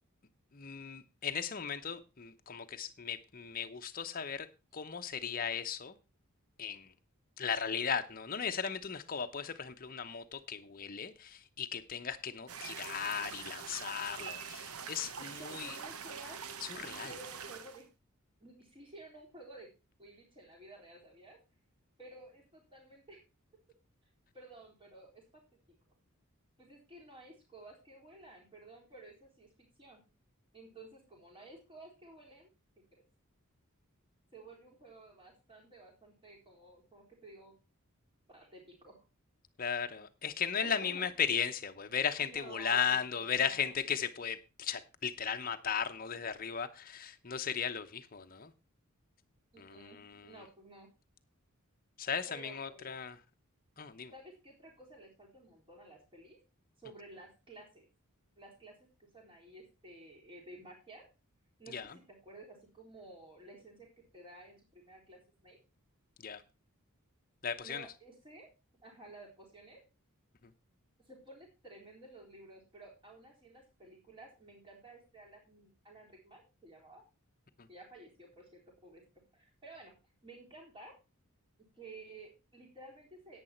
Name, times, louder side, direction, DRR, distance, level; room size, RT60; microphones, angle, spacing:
voice 1, 0.5-4.5 4.7-6.0 6.6-6.9 7.4-15.8 16.6-17.2 39.6-48.5 49.6-50.4 52.0-53.2 53.8-54.1 61.7-62.0 66.2-66.4 67.4-67.9 70.4-70.5 77.6-77.7, left 7 dB, 40° left, 0.9 m, -36 dB
sound 1, 12.5-17.8, right 6 dB, 85° right, 1.1 m, -44 dB
voice 2, 15.2-16.4 16.8-17.9 18.4-19.7 20.0-21.4 22.0-23.2 24.3-25.4 26.6-29.5 29.8-30.0 30.5-32.5 34.3-37.6 38.3-39.0 40.6-41.1 42.2-43.7 49.5-50.9 52.3-52.9 54.1-56.4 56.8-57.9 58.4-61.1 61.6-65.6 67.6-68.5 68.8-69.8 71.0-77.0 77.7-79.0 79.3-79.9 80.2-80.9 81.8-83.4, right 2 dB, 25° right, 4.1 m, -53 dB
10.5 x 8.9 x 4.4 m
head